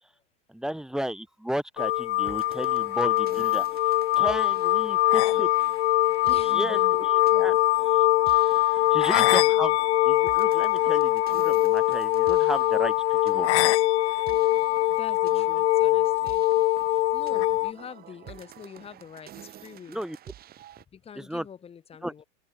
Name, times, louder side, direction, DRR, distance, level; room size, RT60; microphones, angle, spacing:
voice 1, 0.5-3.7 4.2-5.5 6.5-7.6 7.9-9.7 10.1-13.7 19.9-20.2 21.2-21.4 22.0-22.1, equal, ahead, 0.6 m, -34 dB
sound 1, 1.8-17.7, left 17 dB, 75° left, 0.5 m, -22 dB
sound 2, 2.2-20.8, right 12 dB, 25° right, 1.7 m, -49 dB
sound 3, 5.7-19.9, right 14 dB, 70° right, 6.9 m, -66 dB
voice 2, 6.1-7.0 8.9-9.6 14.9-16.5 16.9-20.0 20.9-22.2, left 7 dB, 15° left, 1.4 m, -45 dB
open air
hypercardioid pair, 120°, 35 cm